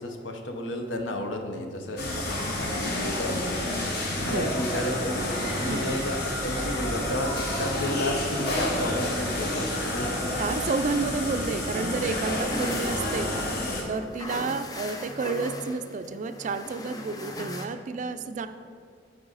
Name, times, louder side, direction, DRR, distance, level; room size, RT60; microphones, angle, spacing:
voice 1, 0.0-3.9 4.2-6.2 6.4-10.1, left 1 dB, 90° left, 4 dB, 0.8 m, -32 dB
sound 1, 2.0-13.8, left 1 dB, 55° left, 1.1 m, -29 dB
voice 2, 5.6-6.0 10.4-13.4 13.9-18.5, right 4 dB, 40° right, 10 dB, 0.3 m, -30 dB
sound 2, 10.4-17.7, left 2 dB, 20° left, 0.5 m, -40 dB
8.7 x 4.7 x 3.9 m, 2.2 s
head